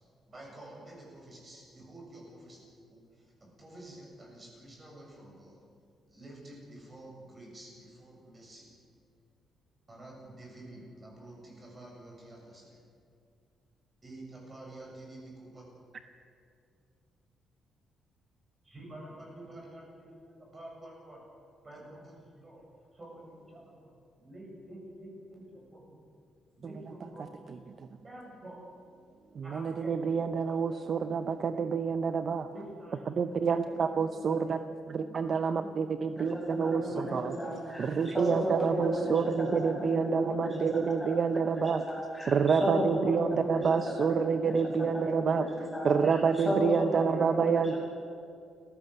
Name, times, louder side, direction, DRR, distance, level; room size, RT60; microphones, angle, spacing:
voice 1, 0.3-2.6 2.9-5.6 6.1-8.8 9.9-12.8 14.0-15.6 18.6-21.2 21.6-22.7 22.9-26.0 26.6-27.5 28.0-28.6 29.4-31.7 32.5-33.0 33.6-34.6 34.9-35.8 36.9-38.5, right 1 dB, 20° right, -2 dB, 7.5 m, -49 dB
voice 2, 29.4-32.5 33.2-34.6 35.1-36.8 37.1-37.3 37.8-41.8 42.3-45.4 45.8-47.7, right 6 dB, 40° right, 9 dB, 0.7 m, -28 dB
voice 3, 36.2-39.2 39.5-43.7 44.0-47.8, equal, 5° left, -4 dB, 7.9 m, -34 dB
29.5 x 16.0 x 6.7 m, 2.4 s
cardioid pair, 155°, 0 cm